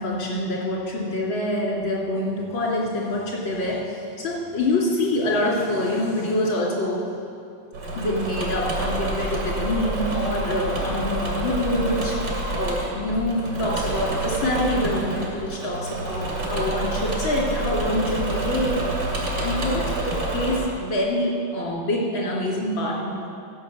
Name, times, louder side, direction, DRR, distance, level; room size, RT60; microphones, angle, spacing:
voice 1, 0.0-7.0 8.0-12.2 12.5-18.8 19.4-23.3, left 1 dB, 85° left, -3 dB, 3.3 m, -26 dB
Engine / Mechanisms, 7.7-20.6, right 2 dB, 75° right, 2.9 m, -28 dB
14.5 x 5.8 x 7.6 m, 2.5 s
omnidirectional pair, 2.1 m